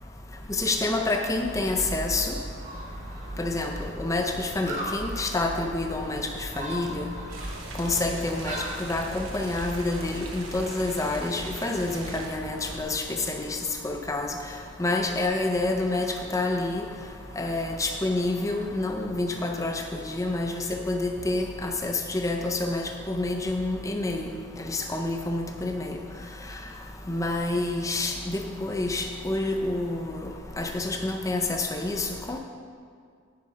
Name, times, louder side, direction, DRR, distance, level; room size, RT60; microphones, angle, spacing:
voice 1, 0.6-2.3 3.4-6.2 6.6-7.0 7.8-13.5 13.8-14.3 14.8-16.8 17.4-19.8 20.1-24.3 24.6-26.0 27.1-30.3 30.6-32.4, left 2 dB, 15° left, 3 dB, 0.5 m, -28 dB
Gull seagull, 1.4-12.8, right 1 dB, 40° right, 1.3 m, -38 dB
sound 1, 7.3-12.3, right 3 dB, 80° right, 1.0 m, -42 dB
8.5 x 5.1 x 5.3 m, 2.2 s
head